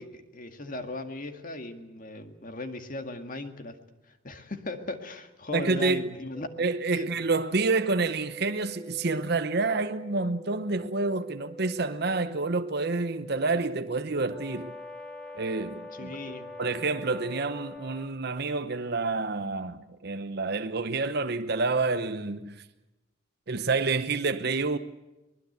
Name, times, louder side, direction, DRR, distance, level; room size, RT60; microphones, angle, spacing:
voice 1, 0.0-3.8 4.2-6.5 6.9-7.2 15.9-16.5, left 2 dB, 45° left, 2.0 m, -38 dB
voice 2, 5.5-6.1 6.6-14.7 15.3-16.2 16.6-22.6 23.5-24.8, right 3 dB, 55° right, 0.9 m, -28 dB
sound 1, 6.3-17.8, right 1 dB, 15° right, 2.7 m, -46 dB
Brass instrument, 14.3-18.2, left 4 dB, 5° left, 2.3 m, -45 dB
23.5 x 20.5 x 8.1 m
head